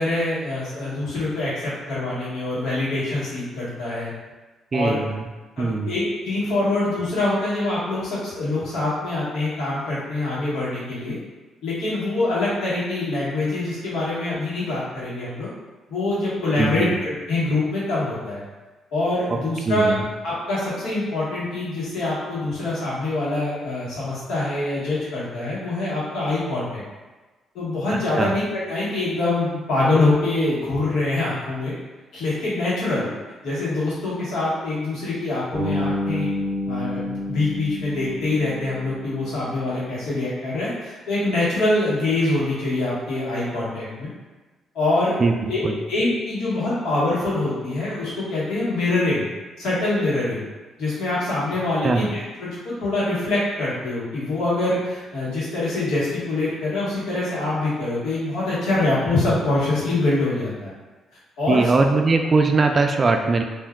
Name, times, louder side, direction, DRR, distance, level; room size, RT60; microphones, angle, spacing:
voice 1, 0.0-4.1 4.7-5.0 5.6-11.2 11.6-15.5 15.9-18.4 18.9-19.9 20.2-26.8 27.5-31.7 32.1-33.1 33.4-36.3 36.6-44.1 44.7-45.2 45.5-45.6 45.9-49.3 49.6-50.4 50.8-60.7 61.4-61.6, left 2 dB, 85° left, -9 dB, 1.3 m, -24 dB
voice 2, 4.7-5.3 5.6-5.9 16.6-17.0 19.3-19.4 19.7-20.0 28.2-28.3 45.2-45.8 51.8-52.1 61.5-63.4, right 3 dB, 35° right, 4 dB, 0.3 m, -20 dB
Bass guitar, 35.5-39.5, left 1 dB, 10° right, 1.3 m, -29 dB
3.6 x 2.5 x 2.2 m, 1.2 s
cardioid pair, 90°, 0 cm